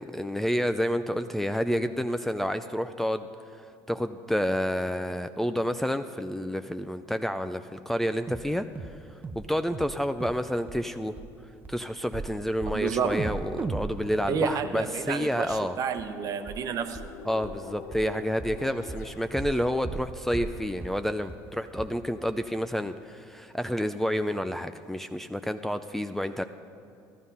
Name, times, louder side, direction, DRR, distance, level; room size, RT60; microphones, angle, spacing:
voice 1, 0.0-3.3 3.9-8.7 9.3-11.2 11.7-15.8 17.3-26.4, equal, 5° left, 9 dB, 0.5 m, -29 dB
sound 1, 8.3-8.5 8.8-9.0 9.2-9.5 9.7-10.0 10.2-10.4 10.7-10.8 11.2-11.3 11.6-11.8 12.1-12.3 12.6-12.8 13.1-15.1 15.5-15.6 16.0-16.1 16.5-16.6 17.0-17.1 17.4-17.6 17.9-18.1 18.4-18.6 18.9-19.1 19.4-19.6 19.8-20.1 20.3-20.6 20.8-21.0 21.3-21.4 21.8-21.9, right 4 dB, 25° right, 0.7 m, -36 dB
voice 2, 12.7-13.2 14.3-17.0, right 6 dB, 50° right, 8 dB, 1.0 m, -30 dB
sound 2, 14.0-19.8, left 8 dB, 80° left, 0.6 m, -47 dB
13.5 x 13.0 x 5.5 m, 2.6 s
supercardioid pair, 105°, 8 cm